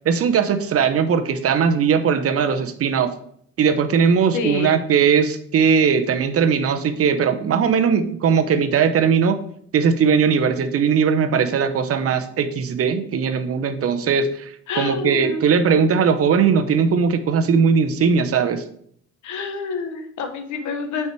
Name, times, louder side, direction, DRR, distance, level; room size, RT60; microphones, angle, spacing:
voice 1, 0.0-3.1 3.6-9.4 9.7-18.6, right 6 dB, 50° right, 8 dB, 0.7 m, -19 dB
voice 2, 4.3-4.8 14.7-15.4 19.2-21.1, left 5 dB, 75° left, 6 dB, 1.1 m, -27 dB
5.5 x 4.7 x 4.7 m, 0.65 s
cardioid pair, 105°, 29 cm